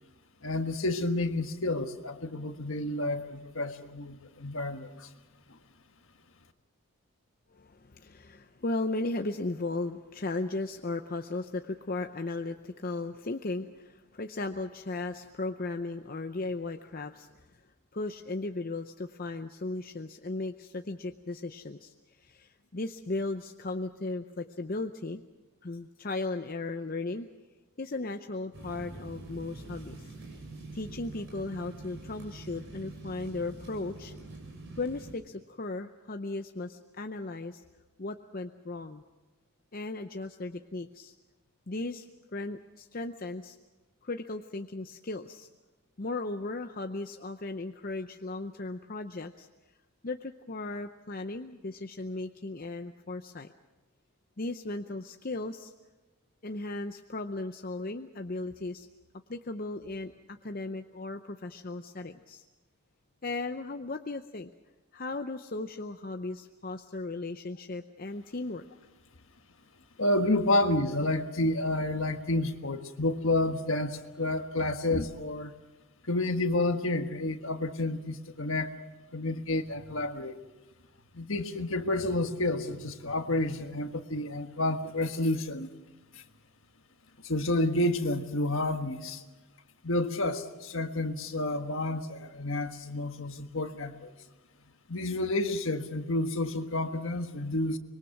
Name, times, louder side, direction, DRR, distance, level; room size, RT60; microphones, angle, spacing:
voice 1, 0.4-5.1 70.0-75.5 76.1-78.7 79.1-80.4 81.1-85.7 86.1-86.2 87.2-89.2 89.8-94.1 94.9-97.8, left 2 dB, 65° left, 7 dB, 1.5 m, -30 dB
voice 2, 7.5-17.4 17.9-25.2 25.6-27.3 27.8-30.0 30.7-34.1 34.8-37.6 38.0-39.0 39.7-41.1 41.7-42.1 42.3-43.6 44.0-45.5 46.0-49.5 50.0-53.5 54.4-55.7 56.4-58.9 59.3-62.4 63.2-64.5 64.9-68.6, left 2 dB, 40° left, 6 dB, 0.7 m, -36 dB
sound 1, 28.5-35.1, right 2 dB, 55° right, 6.7 m, -45 dB
25.0 x 22.0 x 6.0 m, 1.1 s
head